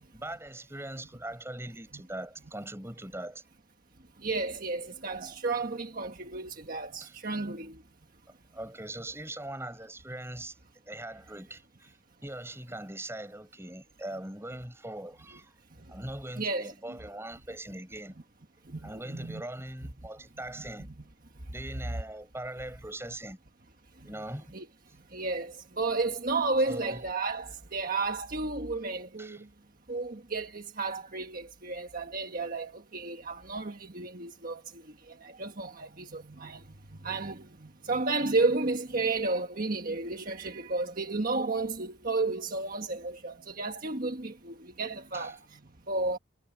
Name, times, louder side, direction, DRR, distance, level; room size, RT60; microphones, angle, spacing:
voice 1, 0.1-3.4 5.2-5.3 7.0-7.2 8.5-10.6 10.9-15.6 15.9-18.2 18.8-20.9 21.5-23.4 24.0-24.5 26.7-27.0 29.2-29.4 45.1-45.3, right 1 dB, 10° right, 6.9 m, -41 dB
voice 2, 4.2-7.7 16.4-16.7 18.7-19.4 24.5-24.7 25.1-29.4 29.9-34.6 35.2-36.6 37.0-45.4 45.9-46.2, right 3 dB, 45° right, 1.5 m, -32 dB
head